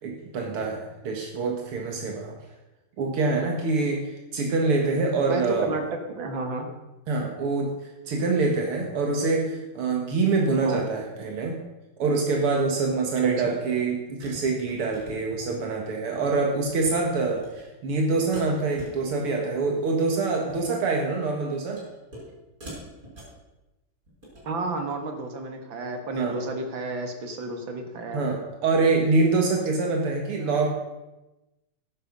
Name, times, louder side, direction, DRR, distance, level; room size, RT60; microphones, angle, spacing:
voice 1, 0.0-2.4 3.0-4.0 4.3-5.7 7.1-7.7 8.1-11.6 12.0-21.8 26.1-26.4 28.1-30.7, right 3 dB, 85° right, 1 dB, 2.5 m, -25 dB
voice 2, 5.3-6.7 10.6-10.8 13.2-13.5 24.4-28.3, right 2 dB, 65° right, 5 dB, 2.4 m, -31 dB
sound 1, 14.2-15.7 16.1-16.4 16.6-16.9 17.2-17.6 18.3-19.4 19.6-20.0 20.4-20.8 21.8-22.3 22.6-23.4 24.0-24.5, right 1 dB, 40° right, 5.9 m, -45 dB
13.0 x 11.0 x 5.3 m, 1.0 s
omnidirectional pair, 2.4 m